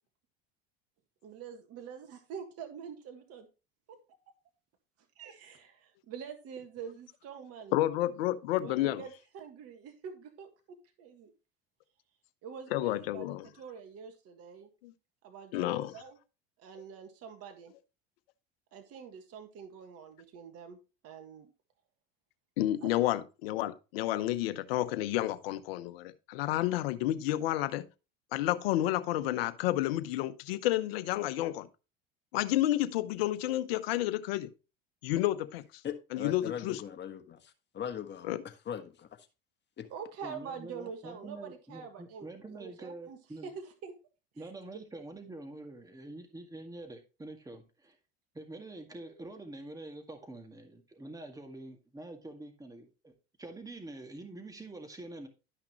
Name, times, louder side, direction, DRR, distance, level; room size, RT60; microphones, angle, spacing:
voice 1, 1.2-3.5 5.2-7.8 8.6-11.3 12.4-14.7 15.2-16.2 16.6-17.7 18.7-20.8 21.0-21.5 22.8-22.9 39.9-43.9 44.4-44.5, right 7 dB, 55° right, 1.8 m, -46 dB
voice 2, 7.7-9.0 12.7-13.5 14.8-14.9 15.5-15.9 22.6-27.8 28.3-31.7 32.3-34.5 35.0-35.6 36.1-36.8 38.3-38.4, left 14 dB, 80° left, 0.9 m, -30 dB
voice 3, 35.8-37.4 37.7-38.3 38.7-39.1 39.8-39.9, left 8 dB, 35° left, 1.4 m, -39 dB
voice 4, 40.2-43.5 44.4-48.0 48.3-55.3, right 2 dB, 10° right, 2.0 m, -46 dB
12.0 x 5.9 x 3.0 m
hypercardioid pair, 85°, 30 cm